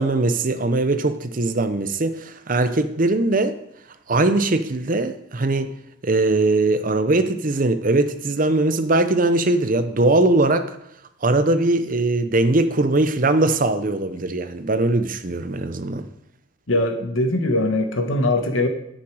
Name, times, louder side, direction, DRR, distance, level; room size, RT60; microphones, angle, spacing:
voice 1, 0.0-3.6 4.1-5.7 6.0-10.7 11.2-16.1, right 2 dB, 45° right, 0.8 m, -20 dB
voice 2, 16.7-18.7, left 1 dB, 85° left, 1.5 m, -21 dB
10.0 x 8.7 x 4.9 m
head